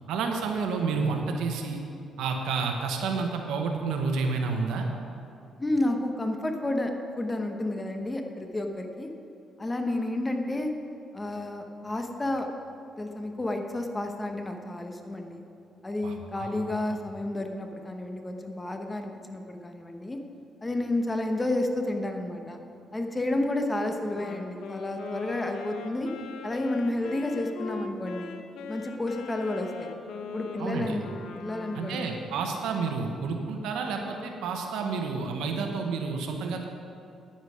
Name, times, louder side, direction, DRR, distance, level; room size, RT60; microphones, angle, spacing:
voice 1, 0.1-1.8 2.2-4.9 16.0-16.6 16.9-17.0 30.6-31.0 31.7-36.7, right 4 dB, 85° right, 3 dB, 1.1 m, -30 dB
voice 2, 5.6-6.9 7.2-9.1 9.6-10.7 11.1-12.5 13.0-15.4 15.8-20.2 20.6-22.6 22.9-26.1 26.4-28.4 28.7-29.9 30.3-31.0 31.3-32.2, left 1 dB, 20° left, 4 dB, 1.0 m, -31 dB
Wind instrument woodwind instrument, 24.1-32.4, left 5 dB, 75° left, 0.8 m, -40 dB
10.0 x 9.9 x 4.9 m, 2.7 s
cardioid pair, 90°, 0 cm